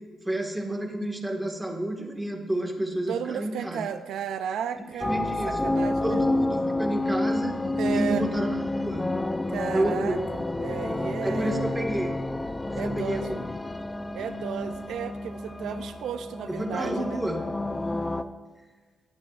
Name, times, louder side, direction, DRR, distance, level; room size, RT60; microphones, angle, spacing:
voice 1, 0.2-3.8 5.0-5.6 6.0-7.6 7.9-9.1 9.7-10.2 11.2-12.2 12.7-13.5 16.5-17.4, right 1 dB, 10° right, 2 dB, 1.8 m, -30 dB
voice 2, 3.1-5.1 5.5-6.2 7.7-8.3 9.5-11.7 12.7-13.3 14.1-17.2, right 8 dB, 80° right, 10 dB, 0.5 m, -34 dB
sound 1, 5.0-18.2, left 2 dB, 15° left, 0.6 m, -29 dB
19.5 x 8.3 x 2.5 m, 1.4 s
cardioid pair, 85°, 0 cm